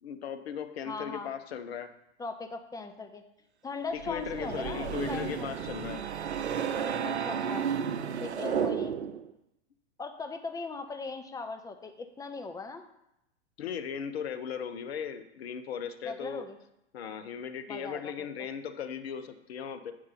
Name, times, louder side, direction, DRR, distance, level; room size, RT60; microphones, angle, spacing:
voice 1, 0.0-1.9 3.9-6.0 8.4-8.8 13.6-16.5 16.9-19.9, left 7 dB, 65° left, 8 dB, 1.0 m, -37 dB
voice 2, 0.8-1.3 2.2-3.2 3.6-5.5 7.0-7.7 8.2-8.9 10.0-12.9 16.0-16.6 17.7-18.3, left 4 dB, 10° left, 6 dB, 0.7 m, -39 dB
sound 1, 4.0-9.3, right 7 dB, 80° right, 0.7 m, -32 dB
8.2 x 4.7 x 5.7 m, 0.83 s
figure-of-eight pair, 100°, 33 cm